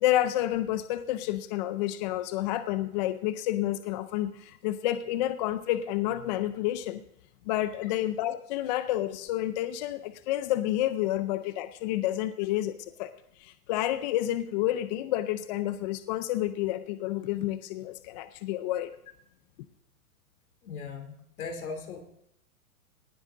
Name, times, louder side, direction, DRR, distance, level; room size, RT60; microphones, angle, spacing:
voice 1, 0.0-7.0 7.5-13.1 13.4-18.9, left 14 dB, 30° left, 12 dB, 0.5 m, -29 dB
voice 2, 20.6-22.0, left 5 dB, 70° left, 6 dB, 3.0 m, -38 dB
18.5 x 8.2 x 3.7 m, 0.79 s
hypercardioid pair, 140°, 44 cm